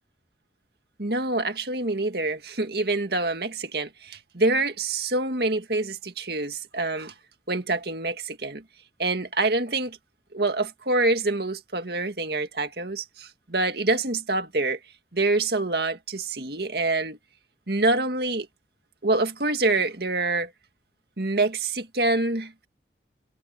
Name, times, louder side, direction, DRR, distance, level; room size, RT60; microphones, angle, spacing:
voice 1, 1.0-7.1 7.5-8.6 9.0-10.0 10.3-14.8 15.1-17.2 17.7-18.5 19.0-20.5 21.2-22.7, right 2 dB, 65° right, 2.0 m, -26 dB
head